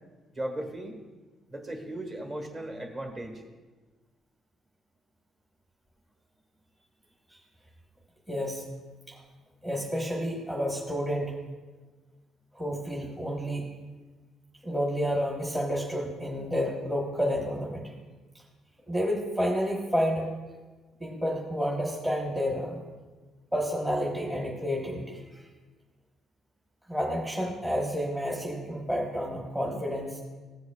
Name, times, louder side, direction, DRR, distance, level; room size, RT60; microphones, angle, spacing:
voice 1, 0.3-1.0 1.5-3.4, right 1 dB, 30° right, 3 dB, 1.4 m, -36 dB
voice 2, 8.3-8.6 9.1-9.2 9.6-11.3 12.5-13.7 14.6-17.8 18.9-20.3 21.0-22.8 23.5-25.2 26.9-30.2, equal, 10° right, -3 dB, 1.1 m, -30 dB
15.5 x 7.9 x 2.3 m, 1.3 s
cardioid pair, 150°, 0 cm